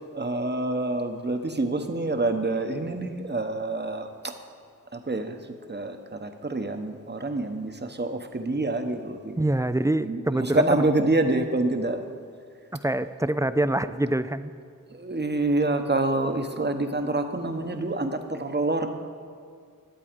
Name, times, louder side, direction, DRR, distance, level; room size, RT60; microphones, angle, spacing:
voice 1, 0.1-4.3 4.9-5.4 5.7-9.4 10.0-12.0 14.9-18.9, right 2 dB, 30° right, 7 dB, 1.0 m, -27 dB
voice 2, 9.4-10.9 12.7-14.5, right 1 dB, 10° right, 13 dB, 0.3 m, -25 dB
11.5 x 8.3 x 5.2 m, 2.1 s
cardioid pair, 50°, 33 cm